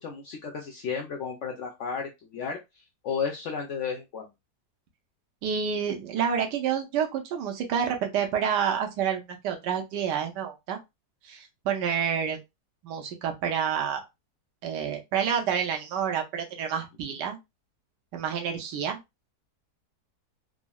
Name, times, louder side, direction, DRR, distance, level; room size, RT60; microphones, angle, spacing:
voice 1, 0.0-2.6 3.0-4.3, left 6 dB, 85° left, 1 dB, 0.6 m, -33 dB
voice 2, 5.4-10.8 11.2-12.4 12.8-14.0 14.6-17.4 18.1-19.0, right 8 dB, 85° right, 3 dB, 1.3 m, -28 dB
3.6 x 2.0 x 2.2 m, 0.22 s
omnidirectional pair, 1.8 m